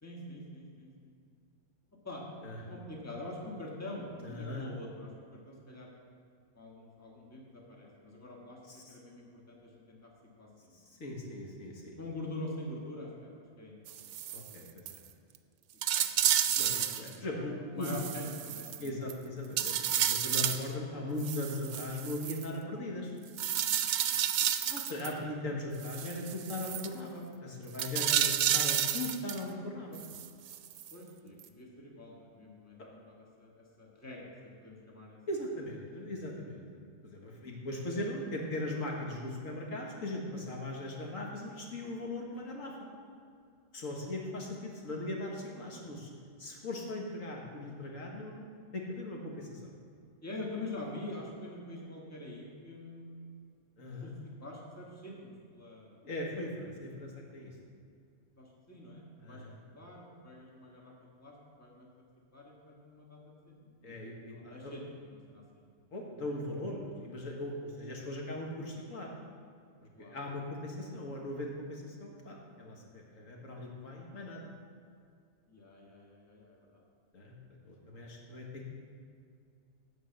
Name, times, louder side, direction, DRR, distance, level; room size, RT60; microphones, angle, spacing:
voice 1, 0.0-1.1 2.0-2.2 2.7-5.9 6.5-8.6 8.9-10.1 10.4-10.7 12.0-14.1 15.9-16.3 16.7-19.0 30.9-35.2 37.4-37.5 45.7-45.9 50.2-53.3 54.0-54.1 54.4-56.1 58.4-59.4 59.7-60.9 61.2-61.9 62.3-65.6 69.9-70.2 75.5-76.8, left 2 dB, 10° left, -3 dB, 1.5 m, -45 dB
voice 2, 2.4-2.7 4.2-4.6 8.7-8.8 10.9-12.0 14.3-15.0 16.6-17.9 18.8-23.1 24.7-30.0 35.3-36.6 37.0-42.8 43.7-46.1 46.4-48.5 48.7-49.7 53.8-54.1 56.0-57.5 59.2-59.6 63.8-64.7 65.9-69.2 70.0-74.5 77.1-77.3 77.7-78.6, left 1 dB, 75° left, -1 dB, 1.8 m, -39 dB
sound 1, 13.9-14.5 14.9-15.0 15.3-15.4 15.8-17.1 17.8-19.1 19.6-20.7 21.2-22.5 23.4-25.1 25.8-26.9 27.7-29.4 29.9-30.9 31.4-31.5, right 10 dB, 70° right, 0.8 m, -31 dB
11.0 x 4.6 x 7.8 m, 2.4 s
omnidirectional pair, 1.4 m